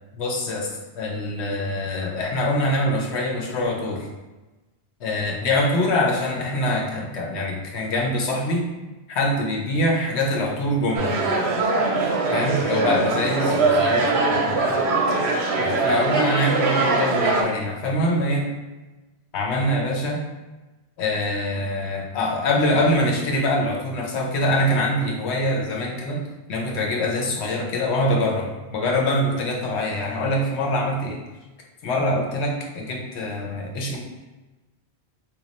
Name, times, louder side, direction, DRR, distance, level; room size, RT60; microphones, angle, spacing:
voice 1, 0.2-0.7 1.0-4.1 5.0-8.7 9.1-11.2 12.3-14.8 15.6-18.5 19.3-20.2 21.0-26.2 26.5-28.5 28.7-31.2 31.8-34.0, left 1 dB, 85° left, -1 dB, 1.0 m, -24 dB
sound 1, 10.9-17.4, right 3 dB, 80° right, 0.9 m, -21 dB
2.9 x 2.3 x 4.0 m, 1.1 s
omnidirectional pair, 1.1 m